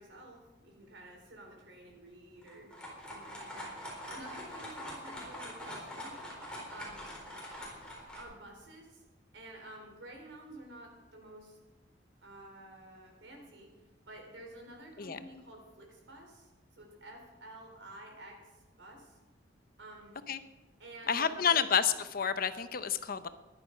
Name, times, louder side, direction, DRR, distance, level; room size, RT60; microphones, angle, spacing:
voice 1, 0.0-2.7 3.1-6.2 6.7-7.1 8.1-9.0 9.3-11.6 12.2-13.7 14.1-19.2 19.8-20.1 20.8-21.8, right 1 dB, 80° right, 1 dB, 3.9 m, -51 dB
sound 1, 2.4-8.2, equal, 5° left, 4.0 m, -44 dB
voice 2, 21.1-23.3, left 7 dB, 55° left, 12 dB, 0.7 m, -29 dB
15.0 x 11.0 x 5.2 m, 1.1 s
head